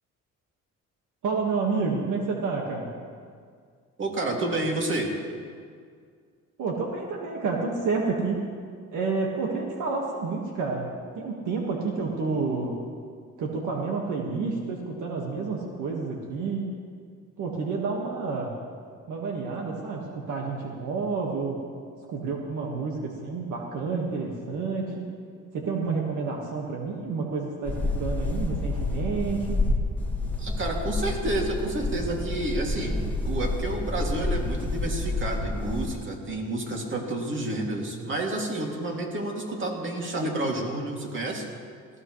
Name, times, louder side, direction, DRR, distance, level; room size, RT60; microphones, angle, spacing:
voice 1, 1.2-2.9 6.6-8.4 8.9-10.9 11.1-12.8 13.4-16.7 17.4-18.5 19.1-21.6 22.1-25.0 25.5-29.7, right 4 dB, 80° right, -1 dB, 1.7 m, -29 dB
voice 2, 4.0-5.1 30.4-41.4, right 2 dB, 40° right, 0 dB, 2.6 m, -30 dB
sound 1, 27.6-35.9, left 2 dB, 5° left, 1.7 m, -29 dB
18.5 x 15.5 x 3.2 m, 2.1 s
cardioid pair, 90°, 30 cm